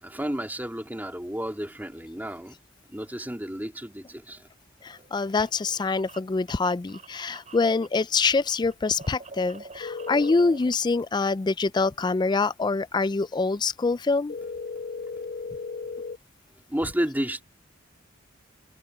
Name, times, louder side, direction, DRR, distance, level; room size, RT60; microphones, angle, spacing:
voice 1, 0.0-2.6 2.9-4.5 16.7-17.4, equal, 10° right, 2.7 m, -31 dB
voice 2, 4.8-14.3, left 4 dB, 20° left, 0.3 m, -25 dB
sound 1, 4.8-8.2 8.4-10.7, right 3 dB, 35° right, 6.5 m, -46 dB
sound 2, 9.8-10.3 14.3-16.2, left 4 dB, 50° left, 1.4 m, -35 dB
head